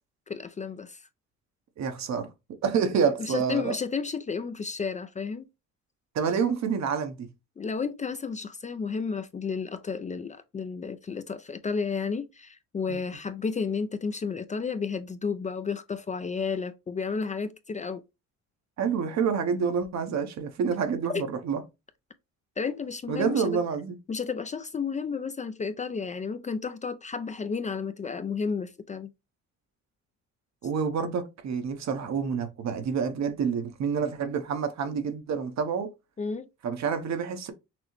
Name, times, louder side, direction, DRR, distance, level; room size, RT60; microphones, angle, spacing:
voice 1, 0.3-1.0 3.2-5.5 7.6-18.0 21.1-21.2 22.6-23.6 24.1-29.1 36.2-36.5, left 5 dB, 25° left, 0.4 m, -32 dB
voice 2, 1.8-2.3 2.6-3.7 6.1-7.3 12.9-13.0 18.8-21.6 23.1-24.0 30.6-35.9 36.6-37.5, right 6 dB, 65° right, 0.9 m, -28 dB
6.0 x 2.0 x 3.1 m
cardioid pair, 90°, 30 cm